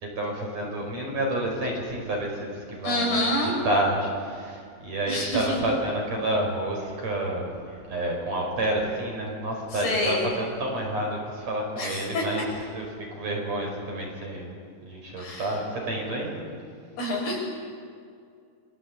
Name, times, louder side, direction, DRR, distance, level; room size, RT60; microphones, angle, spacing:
voice 1, 0.0-12.4 12.7-12.9 13.2-14.6 14.8-16.4, right 1 dB, 40° right, 0 dB, 6.2 m, -29 dB
voice 2, 2.8-3.6 5.1-5.6 9.7-10.3 11.8-12.2 15.2-15.5 17.0-17.4, left 1 dB, 75° left, -3 dB, 9.5 m, -27 dB
28.5 x 23.0 x 8.7 m, 2.2 s
omnidirectional pair, 4.6 m